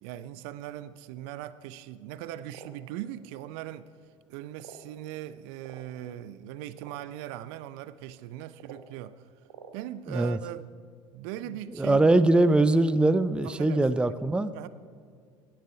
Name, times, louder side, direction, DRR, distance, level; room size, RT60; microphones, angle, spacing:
voice 1, 0.0-3.9 4.3-9.2 9.7-10.7 11.1-12.1 13.4-14.2 14.5-14.7, right 13 dB, 60° right, 0.6 m, -40 dB
sound 1, 2.4-2.7 3.6-3.7 4.5-4.9 5.6-5.9 6.7-7.0 8.5-8.8 9.4-9.7, right 7 dB, 80° right, 1.0 m, -48 dB
voice 2, 11.8-14.5, right 2 dB, 5° right, 0.5 m, -22 dB
17.0 x 10.5 x 4.8 m
figure-of-eight pair, 70°, 16 cm